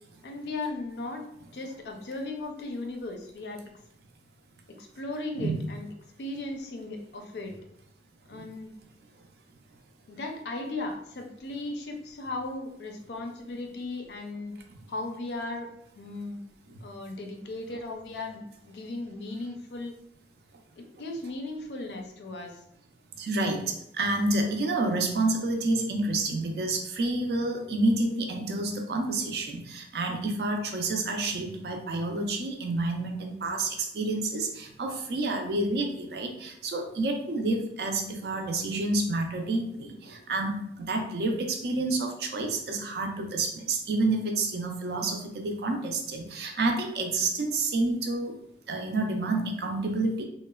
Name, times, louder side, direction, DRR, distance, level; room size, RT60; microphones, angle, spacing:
voice 1, 0.2-1.2 1.5-3.6 4.7-5.9 6.2-7.5 8.3-8.7 10.1-14.5 14.9-15.7 16.0-16.4 16.8-18.4 18.7-19.9 20.8-22.6, left 2 dB, 70° left, 3 dB, 0.4 m, -36 dB
voice 2, 23.2-48.4 48.7-50.2, right 2 dB, 65° right, 4 dB, 0.4 m, -29 dB
3.0 x 2.0 x 2.2 m, 0.76 s
head